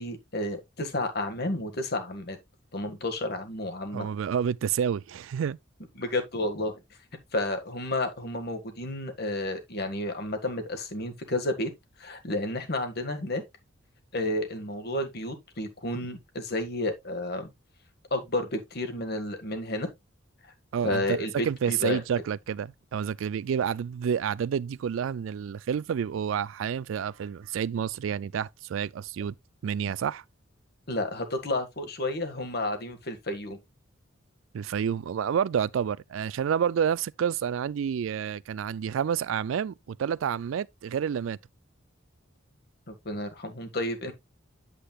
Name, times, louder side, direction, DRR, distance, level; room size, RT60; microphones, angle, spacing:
voice 1, 0.0-2.4 2.7-4.1 6.0-6.8 7.3-11.7 12.0-13.4 14.1-17.5 18.1-19.9 20.8-22.0 30.9-33.6 42.9-44.1, left 1 dB, 55° left, 1.7 m, -31 dB
voice 2, 3.9-5.6 20.7-29.3 29.6-30.2 34.5-41.4, right 8 dB, 80° right, 0.3 m, -29 dB
8.3 x 7.8 x 2.3 m
head